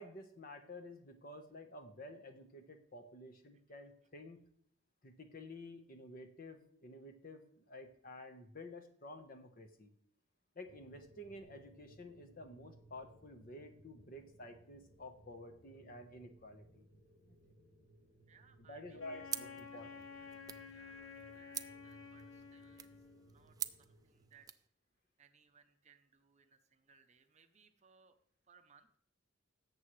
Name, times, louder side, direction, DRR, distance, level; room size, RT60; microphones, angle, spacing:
voice 1, 0.0-4.4 5.0-9.9 10.5-16.8 17.3-17.4 18.7-20.0, left 1 dB, 45° left, 6 dB, 1.1 m, -51 dB
sound 1, 10.6-24.4, right 1 dB, 65° left, 3.6 m, -64 dB
voice 2, 18.3-19.0 19.7-20.3 20.7-22.9 23.2-24.5 25.2-28.2 28.4-28.9, right 6 dB, 35° right, 8 dB, 0.7 m, -67 dB
Wind instrument woodwind instrument, 19.0-23.4, left 5 dB, 85° left, 0.9 m, -52 dB
sound 2, 19.3-24.7, right 9 dB, 20° right, 0.3 m, -48 dB
17.0 x 7.4 x 3.2 m, 0.64 s
head